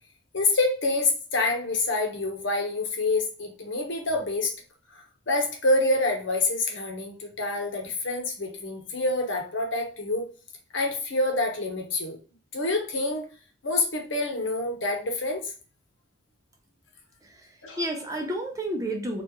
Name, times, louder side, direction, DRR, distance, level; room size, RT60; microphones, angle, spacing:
voice 1, 0.3-4.5 4.9-10.3 10.7-12.2 12.5-13.3 13.6-15.4 17.6-17.8, left 2 dB, 70° left, 2 dB, 1.1 m, -27 dB
voice 2, 17.2-19.2, right 1 dB, 15° right, 2 dB, 0.6 m, -31 dB
4.4 x 2.5 x 3.0 m, 0.37 s
head